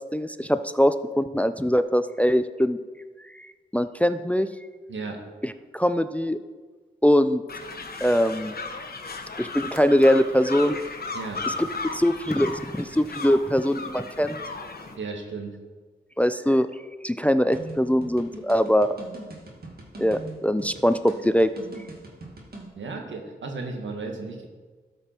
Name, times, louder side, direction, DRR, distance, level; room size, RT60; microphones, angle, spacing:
voice 1, 0.1-2.8 3.4-4.5 5.4-6.4 7.0-7.4 8.0-8.5 9.4-10.8 11.5-11.7 11.9-14.4 16.2-16.7 17.0-18.9 20.0-21.5, equal, 5° left, 11 dB, 0.5 m, -22 dB
voice 2, 4.9-5.2 11.1-11.4 14.9-15.5 22.7-24.5, right 3 dB, 80° right, 2 dB, 1.4 m, -34 dB
sound 1, 7.5-15.0, left 4 dB, 55° left, 1.1 m, -35 dB
sound 2, 17.5-22.7, right 2 dB, 55° right, 2.2 m, -41 dB
12.5 x 5.2 x 4.4 m, 1.4 s
cardioid pair, 45°, 19 cm